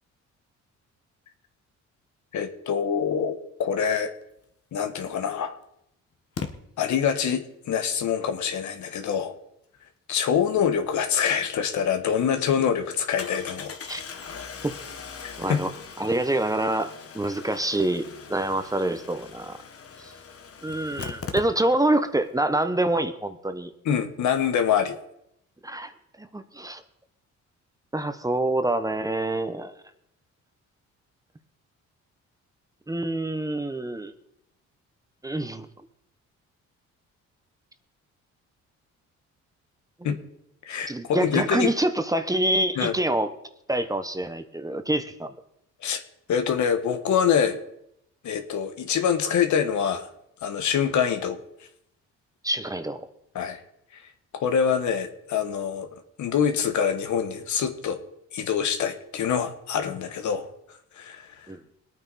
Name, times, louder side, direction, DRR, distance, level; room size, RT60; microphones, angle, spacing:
voice 1, 2.3-4.1 4.7-5.6 6.8-9.3 10.1-13.7 15.2-15.6 23.8-25.0 40.0-40.2 40.6-41.7 42.8-42.9 45.8-46.0 46.3-47.6 48.2-50.1 50.4-51.4 53.3-53.6 53.9-54.0 54.3-58.0 58.3-60.5 60.9-61.5, left 7 dB, 70° left, 8 dB, 1.5 m, -25 dB
Engine starting, 4.9-5.0 6.4-6.5 11.6-11.7 12.0-12.1 13.2-22.0 22.3-22.4 22.6-22.7, left 6 dB, 50° left, 1.4 m, -40 dB
voice 2, 15.4-15.7 16.0-19.6 20.0-20.1 20.6-23.7 25.6-25.9 26.2-26.8 27.9-29.8 32.9-34.1 35.2-35.7 40.9-43.3 43.7-45.3 52.4-53.1 61.5-61.6, right 1 dB, 10° right, 9 dB, 1.1 m, -26 dB
21.0 x 9.1 x 4.2 m, 0.77 s
cardioid pair, 90°, 30 cm